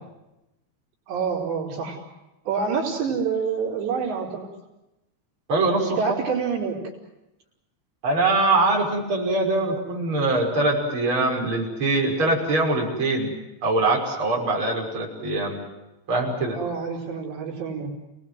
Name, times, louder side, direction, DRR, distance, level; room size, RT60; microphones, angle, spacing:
voice 1, 1.1-2.0 2.5-4.4 5.8-6.8 16.5-17.9, right 5 dB, 70° right, -1 dB, 6.0 m, -27 dB
voice 2, 5.5-6.0 8.0-13.4 13.6-15.6 16.1-16.6, right 2 dB, 25° right, -3 dB, 6.5 m, -23 dB
30.0 x 19.5 x 7.8 m, 0.95 s
omnidirectional pair, 5.3 m